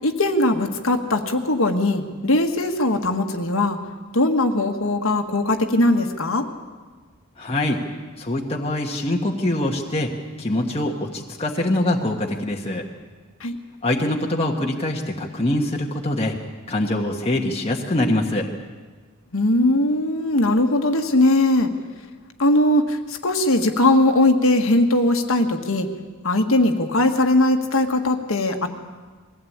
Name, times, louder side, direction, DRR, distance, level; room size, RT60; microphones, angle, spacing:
voice 1, 0.0-3.8 4.1-6.4 13.4-13.6 19.3-21.7 22.4-25.9 26.2-28.7, left 1 dB, 70° left, 5 dB, 1.6 m, -20 dB
voice 2, 7.4-7.8 8.2-10.1 10.4-12.8 13.8-16.3 16.7-18.5, left 1 dB, 30° left, -1 dB, 1.4 m, -24 dB
22.0 x 16.0 x 8.7 m, 1.4 s
head